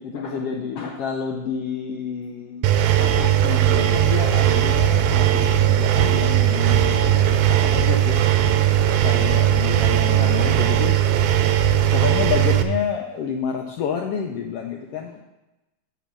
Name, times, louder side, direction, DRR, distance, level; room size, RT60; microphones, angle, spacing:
voice 1, 0.0-2.7 3.0-8.2 9.0-11.0 11.9-15.2, left 7 dB, 75° left, 2 dB, 1.4 m, -29 dB
Engine, 2.6-12.6, right 11 dB, 85° right, 2.0 m, -18 dB
7.6 x 7.1 x 5.9 m, 1.0 s
omnidirectional pair, 3.4 m